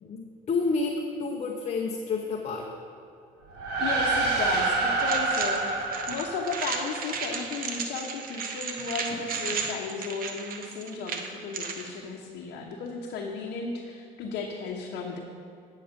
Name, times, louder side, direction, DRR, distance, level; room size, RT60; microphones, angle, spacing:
voice 1, 0.0-2.7 3.7-3.8, left 4 dB, 40° left, 1 dB, 0.9 m, -30 dB
sound 1, 3.5-7.2, right 3 dB, 85° right, 1.9 m, -27 dB
voice 2, 3.8-5.7 6.1-15.2, left 4 dB, 80° left, -1 dB, 1.0 m, -34 dB
sound 2, 5.0-11.9, right 5 dB, 60° right, 1.0 m, -34 dB
9.3 x 7.5 x 5.1 m, 2.4 s
cardioid pair, 110°, 17 cm